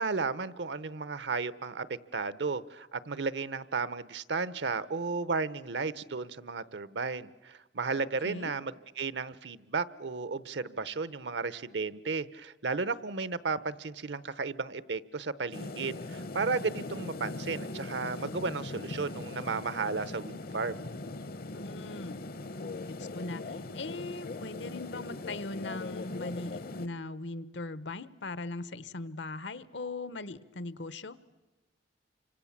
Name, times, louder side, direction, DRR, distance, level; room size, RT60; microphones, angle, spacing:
voice 1, 0.0-20.9, right 4 dB, 70° right, 17 dB, 0.9 m, -34 dB
voice 2, 8.0-8.5 21.5-22.2 22.9-31.2, left 2 dB, 80° left, 16 dB, 1.0 m, -40 dB
sound 1, 15.5-26.9, left 2 dB, 55° left, 0.9 m, -40 dB
29.5 x 25.5 x 7.3 m, 1.1 s
head